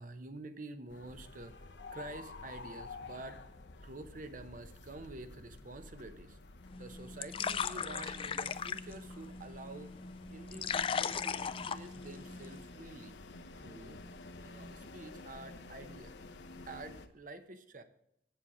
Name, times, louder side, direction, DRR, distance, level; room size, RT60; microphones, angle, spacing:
voice 1, 0.0-3.4 3.8-6.4 6.7-9.9 10.3-13.1 13.6-14.0 14.4-16.1 16.7-17.8, right 2 dB, 50° right, 10 dB, 0.8 m, -48 dB
sound 1, 0.9-17.1, left 3 dB, 90° left, 0.8 m, -51 dB
sound 2, 3.9-9.4, right 2 dB, 80° right, 3.9 m, -66 dB
sound 3, 6.7-12.6, left 6 dB, 30° left, 0.3 m, -38 dB
8.6 x 7.5 x 6.1 m, 0.76 s
head